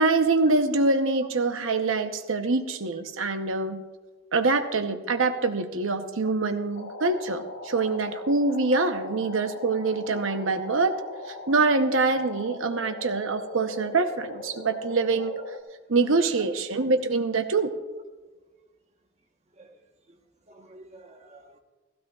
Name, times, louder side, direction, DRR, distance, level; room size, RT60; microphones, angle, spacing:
voice 1, 0.0-3.8 4.3-10.9 11.3-15.4 15.9-17.7, right 3 dB, 80° right, 0.9 m, -25 dB
sound 1, 6.7-15.6, left 2 dB, 80° left, 1.1 m, -40 dB
voice 2, 20.5-21.6, right 4 dB, 35° right, 1.2 m, -48 dB
15.5 x 15.5 x 2.4 m
head